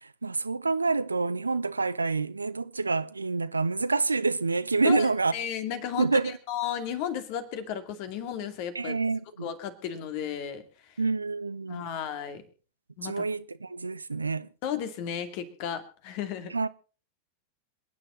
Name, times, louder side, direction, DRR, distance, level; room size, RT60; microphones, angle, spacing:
voice 1, 0.0-5.3 6.0-6.3 8.7-9.5 11.0-11.9 13.0-14.5 16.5-16.7, right 3 dB, 80° right, 0.6 m, -27 dB
voice 2, 4.8-9.0 9.4-11.0 11.7-12.4 13.0-13.1 14.6-16.5, left 9 dB, 45° left, 2.4 m, -34 dB
27.5 x 9.9 x 3.8 m
figure-of-eight pair, 90°, 0 cm